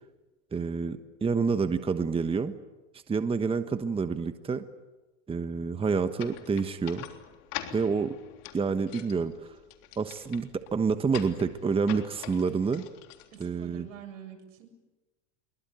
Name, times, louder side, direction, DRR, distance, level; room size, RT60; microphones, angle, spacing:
voice 1, 0.5-2.5 3.1-4.6 5.3-7.1 7.7-8.1 8.5-9.6 10.0-12.8 13.4-13.9, right 5 dB, 15° right, 10 dB, 1.2 m, -28 dB
sound 1, 6.2-14.0, left 13 dB, 55° left, 3.5 m, -45 dB
voice 2, 13.3-14.7, right 8 dB, 75° right, 6 dB, 7.5 m, -46 dB
25.0 x 23.5 x 9.2 m, 1.1 s
supercardioid pair, 115°, 38 cm